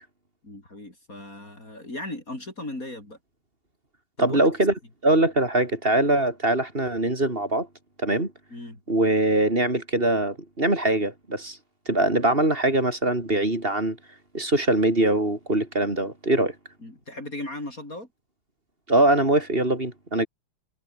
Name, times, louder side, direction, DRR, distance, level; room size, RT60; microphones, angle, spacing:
voice 1, 0.4-3.2 4.2-4.5 8.5-8.8 16.8-18.1, left 1 dB, 40° left, 7.0 m, -37 dB
voice 2, 4.2-4.7 5.0-7.7 8.0-8.3 8.9-11.6 11.9-14.0 14.3-16.5 18.9-20.3, right 1 dB, 25° right, 4.9 m, -22 dB
omnidirectional pair, 2.3 m